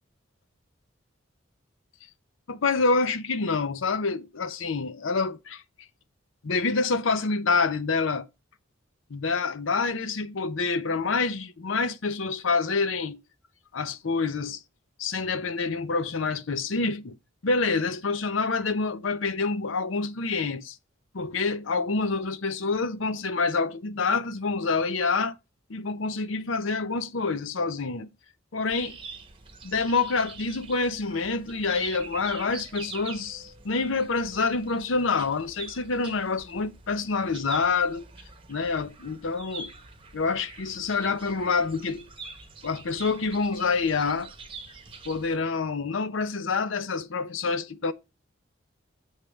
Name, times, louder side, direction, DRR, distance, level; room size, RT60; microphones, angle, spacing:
voice 1, 2.5-5.6 6.4-8.3 9.1-13.2 13.7-14.6 15.0-17.2 17.4-20.8 21.1-25.4 25.7-28.1 28.5-29.0 29.6-38.0 38.5-39.7 40.1-42.1 42.6-44.3 45.1-47.9, left 4 dB, 85° left, 0.7 m, -27 dB
(Raw) Birds, 28.7-45.4, right 4 dB, 30° right, 0.9 m, -45 dB
7.2 x 3.4 x 6.3 m
head